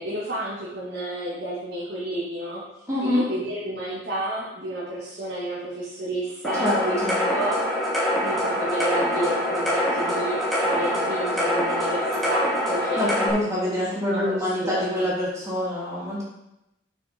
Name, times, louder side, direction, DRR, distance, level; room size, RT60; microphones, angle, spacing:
voice 1, 0.0-2.6 3.0-7.0 7.3-7.6 8.2-13.0 13.6-13.8 14.1-15.0, right 1 dB, 60° right, -8 dB, 2.5 m, -31 dB
voice 2, 2.9-3.2 6.6-7.2 13.0-16.2, left 1 dB, 15° right, -7 dB, 3.3 m, -25 dB
sound 1, 6.4-13.3, equal, ahead, 2.5 m, -24 dB
8.4 x 6.5 x 4.6 m, 0.87 s
head